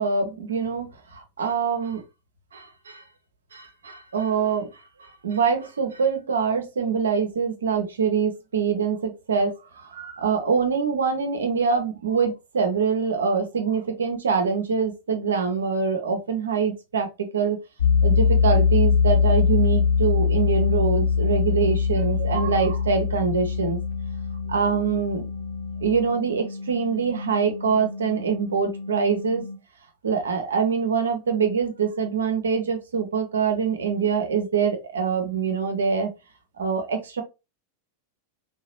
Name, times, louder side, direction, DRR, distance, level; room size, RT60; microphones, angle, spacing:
voice 1, 0.0-2.0 2.5-3.0 3.5-17.6 18.0-23.8 24.5-25.2 25.8-29.4 30.0-36.1 36.6-37.2, right 6 dB, 70° right, 0.8 m, -24 dB
sound 1, 17.8-29.6, left 5 dB, 75° left, 1.8 m, -23 dB
3.3 x 2.9 x 3.0 m
figure-of-eight pair, 90°, 0 cm